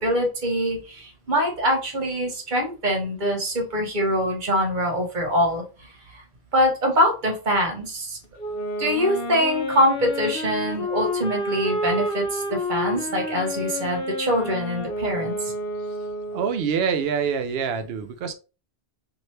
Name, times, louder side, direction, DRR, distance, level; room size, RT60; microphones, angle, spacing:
voice 1, 0.0-6.2 6.5-8.2 8.8-15.5, equal, 50° right, 2 dB, 1.0 m, -24 dB
Wind instrument woodwind instrument, 8.4-16.7, left 1 dB, 65° left, 0.8 m, -29 dB
voice 2, 16.3-18.3, right 6 dB, 70° right, 8 dB, 0.8 m, -25 dB
2.8 x 2.6 x 3.1 m, 0.32 s
omnidirectional pair, 1.1 m